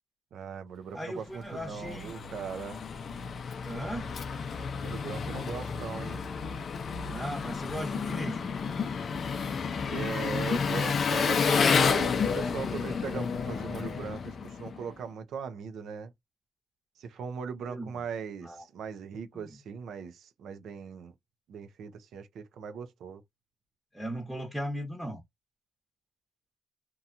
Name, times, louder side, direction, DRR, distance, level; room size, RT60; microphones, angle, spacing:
voice 1, 0.3-2.8 4.8-6.2 9.9-16.1 17.0-21.1 21.5-23.2, right 6 dB, 90° right, 0.5 m, -39 dB
voice 2, 0.9-2.2 3.6-4.1 7.1-8.5 17.6-18.0 18.4-18.7 23.9-25.2, equal, 5° right, 0.9 m, -37 dB
Engine, 1.3-14.9, left 5 dB, 50° left, 0.5 m, -30 dB
2.8 x 2.2 x 2.5 m
cardioid pair, 125°, 0 cm